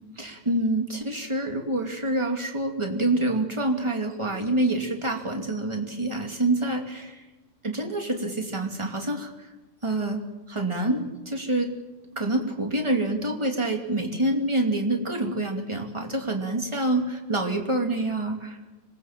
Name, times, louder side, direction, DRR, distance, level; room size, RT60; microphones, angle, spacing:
voice 1, 0.2-7.2 7.6-9.3 9.8-10.2 10.5-11.7 12.2-18.6, right 2 dB, 10° right, 2 dB, 2.1 m, -27 dB
26.0 x 19.5 x 7.5 m, 1.1 s
omnidirectional pair, 3.5 m